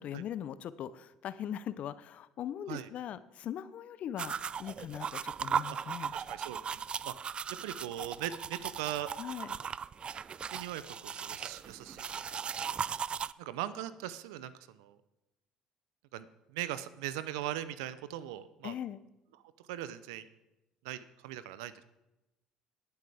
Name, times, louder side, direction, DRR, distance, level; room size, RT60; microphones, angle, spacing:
voice 1, 0.0-4.3 4.6-6.1 9.2-9.6 18.6-19.0, left 10 dB, 55° left, 15 dB, 0.6 m, -40 dB
sound 1, 4.2-13.3, right 7 dB, 40° right, 0.3 m, -37 dB
voice 2, 6.1-7.1 7.6-9.1 10.5-12.2 12.6-12.9 13.4-15.0 16.1-18.7 19.6-20.3 20.8-21.8, right 12 dB, 80° right, 15 dB, 0.6 m, -40 dB
20.0 x 8.0 x 3.5 m, 0.96 s
hypercardioid pair, 60°, 3 cm